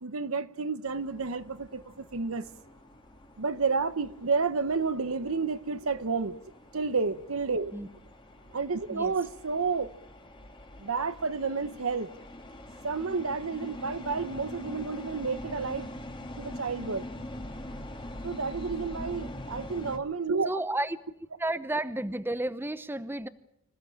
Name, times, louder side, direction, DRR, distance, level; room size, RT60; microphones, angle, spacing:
voice 1, 0.0-2.5 3.4-6.4 6.7-7.7 8.5-9.9 10.8-12.1 12.8-15.9 16.4-17.1 18.2-20.5, right 4 dB, 85° right, 1.0 m, -30 dB
sound 1, 0.9-20.0, left 1 dB, 25° left, 1.7 m, -44 dB
voice 2, 20.5-21.0 21.4-23.3, right 1 dB, 10° right, 0.8 m, -32 dB
26.0 x 16.0 x 8.7 m
head